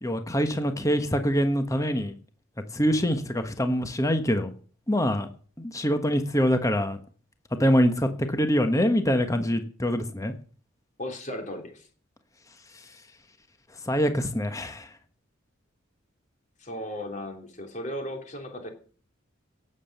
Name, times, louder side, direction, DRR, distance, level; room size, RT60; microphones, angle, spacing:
voice 1, 0.0-2.1 2.7-4.5 4.9-5.3 5.6-7.0 7.6-10.3 13.9-14.9, equal, 15° left, 7 dB, 1.3 m, -24 dB
voice 2, 11.0-11.9 16.6-18.7, left 1 dB, 35° left, 4 dB, 3.3 m, -36 dB
17.5 x 7.8 x 6.7 m, 0.43 s
head